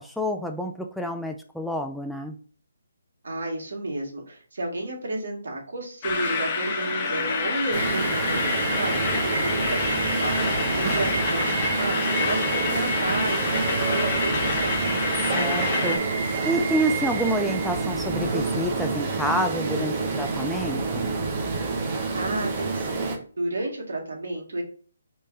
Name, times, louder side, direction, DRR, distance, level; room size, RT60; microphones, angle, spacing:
voice 1, 0.0-2.4 15.4-16.0 16.4-21.2, equal, ahead, 3 dB, 0.4 m, -28 dB
voice 2, 3.2-9.0 9.2-15.2 22.1-24.6, right 2 dB, 75° right, 0 dB, 1.8 m, -32 dB
sound 1, 6.0-16.0, left 5 dB, 35° left, 1.0 m, -28 dB
sound 2, 7.7-23.2, right 4 dB, 35° right, 0.9 m, -27 dB
4.4 x 3.2 x 3.6 m, 0.43 s
figure-of-eight pair, 150°, 0 cm